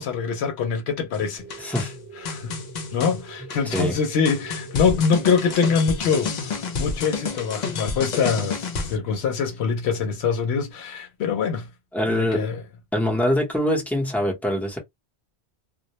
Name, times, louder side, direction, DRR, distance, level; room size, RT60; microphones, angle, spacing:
voice 1, 0.0-1.9 2.2-2.6 2.9-11.7 12.1-12.6, left 6 dB, 80° left, 0.8 m, -24 dB
sound 1, 1.1-9.0, left 4 dB, 55° left, 0.5 m, -30 dB
sound 2, 1.4-9.7, right 6 dB, 65° right, 0.9 m, -45 dB
voice 2, 1.6-1.9 3.7-3.9 11.9-12.5 12.9-14.8, left 1 dB, ahead, 0.6 m, -23 dB
2.2 x 2.0 x 2.7 m
omnidirectional pair, 1.1 m